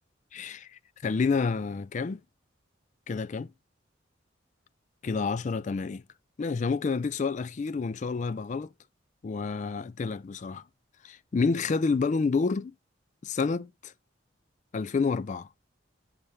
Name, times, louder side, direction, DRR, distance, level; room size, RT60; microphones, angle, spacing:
voice 1, 0.3-0.7 1.0-2.2 3.1-3.5 5.0-6.0 6.4-8.7 9.2-10.6 11.0-12.7 13.2-13.9 14.7-15.5, left 4 dB, 40° left, 0.3 m, -29 dB
7.3 x 6.7 x 3.2 m
head